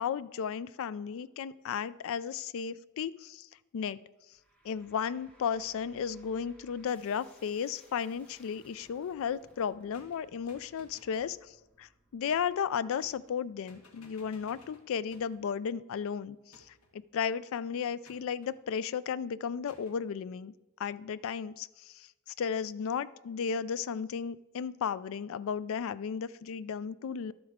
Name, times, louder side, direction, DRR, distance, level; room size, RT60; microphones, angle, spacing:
voice 1, 0.0-3.5 3.7-4.0 4.6-16.7 16.9-20.5 20.8-27.3, left 7 dB, 65° left, 18 dB, 0.3 m, -34 dB
sound 1, 4.3-15.6, right 1 dB, 5° left, 1.6 m, -64 dB
sound 2, 9.9-11.4 12.3-12.6 13.0-13.4 13.7-15.5 16.5-17.0 18.0-18.6 19.7-20.0, left 2 dB, 80° left, 1.4 m, -59 dB
11.5 x 7.9 x 3.6 m, 1.0 s
head